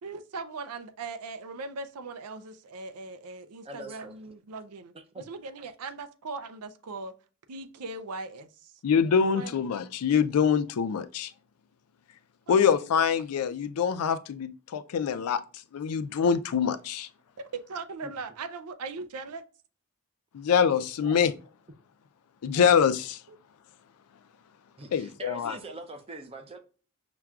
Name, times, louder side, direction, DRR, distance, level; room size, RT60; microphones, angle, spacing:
voice 1, 0.0-7.2 7.5-8.7 9.2-9.7 13.1-13.2 17.5-19.4 23.3-23.4, right 3 dB, 85° right, 0.5 m, -39 dB
voice 2, 3.6-4.1 4.9-5.2 18.0-18.1 21.0-21.2 22.5-22.8 24.8-26.6, right 2 dB, 25° right, 0.5 m, -43 dB
voice 3, 8.8-11.3 12.5-15.4 15.7-17.1 20.3-21.3 22.4-23.2 24.9-25.6, left 7 dB, 80° left, 0.4 m, -24 dB
5.8 x 2.3 x 2.3 m
head